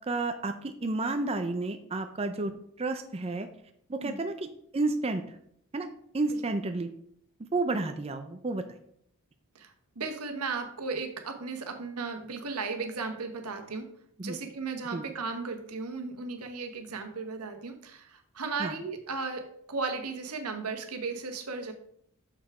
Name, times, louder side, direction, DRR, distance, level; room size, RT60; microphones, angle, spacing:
voice 1, 0.1-2.5 2.8-3.5 3.9-5.2 5.7-5.9 6.1-6.9 7.5-8.7 14.2-14.4 14.9-15.0 18.6-18.7, right 2 dB, 25° right, 7 dB, 0.5 m, -31 dB
voice 2, 9.5-13.9 14.2-19.4 19.7-21.7, right 4 dB, 90° right, 5 dB, 1.3 m, -35 dB
6.5 x 5.8 x 4.9 m, 0.67 s
head